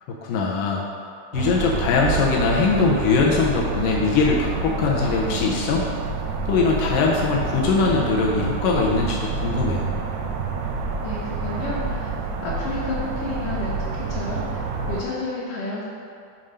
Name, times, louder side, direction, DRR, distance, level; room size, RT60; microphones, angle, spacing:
voice 1, 0.2-0.9 1.3-5.9 6.5-9.8, left 4 dB, 85° left, -2 dB, 1.8 m, -21 dB
sound 1, 1.3-15.0, right 4 dB, 85° right, 2.6 m, -28 dB
voice 2, 11.0-12.1 12.4-15.8, left 3 dB, 70° left, -8 dB, 2.2 m, -31 dB
7.5 x 3.8 x 5.5 m, 2.4 s
omnidirectional pair, 4.7 m